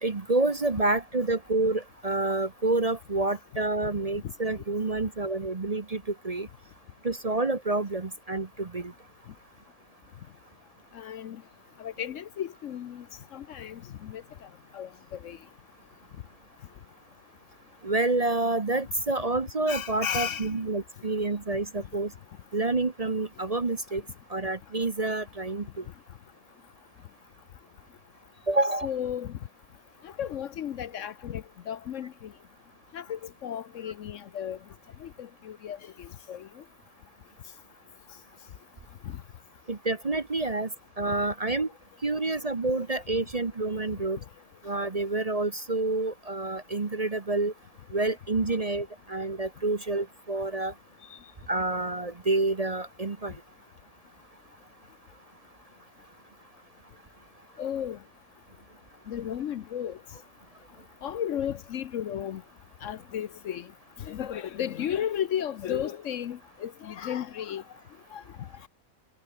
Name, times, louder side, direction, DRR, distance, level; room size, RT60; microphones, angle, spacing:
voice 1, 0.0-6.5 7.0-8.9 17.8-22.1 22.5-24.0 24.3-25.8 28.5-28.9 39.7-40.7 41.0-41.7 42.0-44.2 44.6-47.5 47.9-50.7 51.5-53.3, right 2 dB, 30° right, 1.0 m, -28 dB
voice 2, 10.9-11.4 11.8-13.0 13.3-14.5 14.7-15.4 19.7-20.6 28.8-29.4 30.0-32.3 32.9-34.6 35.0-36.6 39.0-39.2 44.2-44.3 51.1-51.2 57.6-58.0 59.1-60.0 61.0-62.4 62.8-63.7 64.0-67.6 68.1-68.2, left 9 dB, 65° left, 1.0 m, -34 dB
omnidirectional pair, 1.5 m